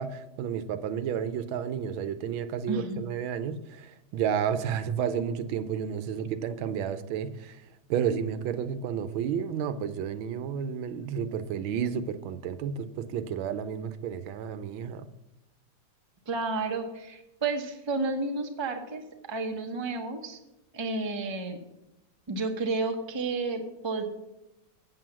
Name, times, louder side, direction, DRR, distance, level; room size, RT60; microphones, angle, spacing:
voice 1, 0.0-7.6 7.9-15.1, right 8 dB, 85° right, 12 dB, 1.5 m, -31 dB
voice 2, 2.7-3.0 16.3-20.4 20.7-21.6 22.3-24.0, right 3 dB, 20° right, 4 dB, 0.7 m, -31 dB
7.8 x 7.7 x 7.3 m, 0.92 s
omnidirectional pair, 2.2 m